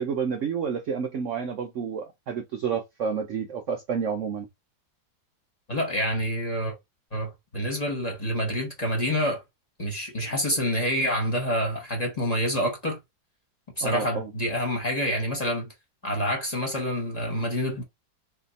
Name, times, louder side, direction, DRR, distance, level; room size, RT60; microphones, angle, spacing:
voice 1, 0.0-4.5 13.8-14.3, right 6 dB, 75° right, 0.7 m, -30 dB
voice 2, 5.7-6.7 7.1-9.4 9.8-13.0 13.8-15.7 16.0-17.8, equal, 25° left, 1.3 m, -27 dB
3.3 x 2.7 x 4.0 m
omnidirectional pair, 2.0 m